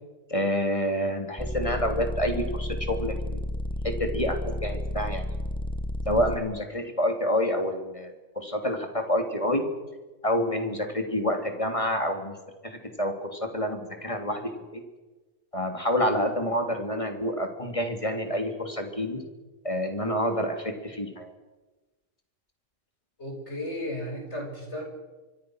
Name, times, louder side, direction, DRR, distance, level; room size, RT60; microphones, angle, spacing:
voice 1, 0.3-3.4 3.8-5.3 6.1-9.6 10.2-12.3 12.6-14.4 14.7-14.8 15.5-19.2 19.6-21.3, equal, 25° left, 5 dB, 3.4 m, -28 dB
sound 1, 1.4-6.4, left 1 dB, 5° left, 1.2 m, -31 dB
voice 2, 23.2-24.8, left 1 dB, 60° left, 1 dB, 7.4 m, -34 dB
25.0 x 24.5 x 6.6 m, 1.2 s
omnidirectional pair, 1.3 m